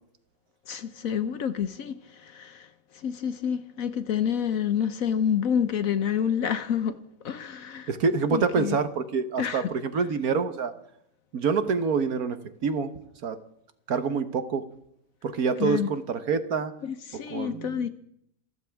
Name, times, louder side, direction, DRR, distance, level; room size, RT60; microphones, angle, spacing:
voice 1, 0.7-2.7 2.9-7.0 7.2-7.9 8.3-8.8 9.4-9.7 15.6-15.9 16.8-17.9, left 8 dB, 60° left, 1.1 m, -28 dB
voice 2, 7.9-10.7 11.3-12.4 12.6-12.9 13.2-13.4 13.9-14.6 15.2-16.7 17.3-17.9, right 5 dB, 60° right, 1.6 m, -26 dB
26.5 x 14.0 x 3.5 m
omnidirectional pair, 1.8 m